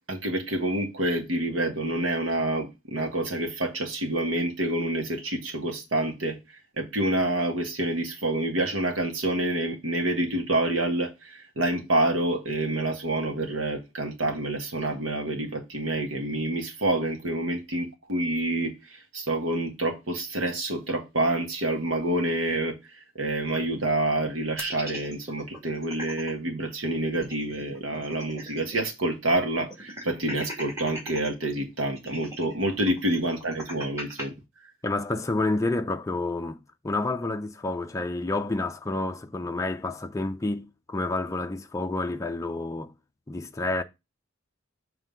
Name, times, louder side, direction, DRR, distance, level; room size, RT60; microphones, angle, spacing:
voice 1, 0.1-6.4 6.8-22.8 23.2-34.3, right 1 dB, 80° right, 1.5 m, -27 dB
sound 1, 24.6-26.3 26.7-26.8 27.1-28.8 29.1-29.2 29.7-31.3 32.0-34.3, equal, 15° right, 2.3 m, -39 dB
voice 2, 34.8-36.6 36.8-42.9 43.3-43.8, left 2 dB, 15° left, 0.5 m, -29 dB
7.4 x 3.3 x 5.1 m
head